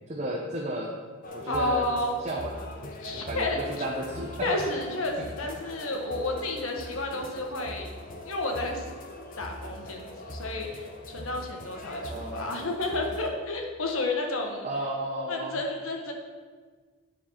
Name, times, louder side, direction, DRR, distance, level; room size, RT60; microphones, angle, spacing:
voice 1, 0.1-0.9 1.3-1.8 2.2-2.5 3.1-3.5 3.8-4.5 12.1-12.7 14.6-15.6, right 1 dB, 35° right, -2 dB, 0.9 m, -33 dB
sound 1, 1.2-13.3, left 1 dB, 40° left, 1.0 m, -41 dB
voice 2, 1.5-2.1 3.0-3.8 4.4-7.9 8.3-8.8 9.4-14.7 15.3-16.1, left 2 dB, 75° left, 2 dB, 1.3 m, -31 dB
10.0 x 4.7 x 5.7 m, 1.5 s
head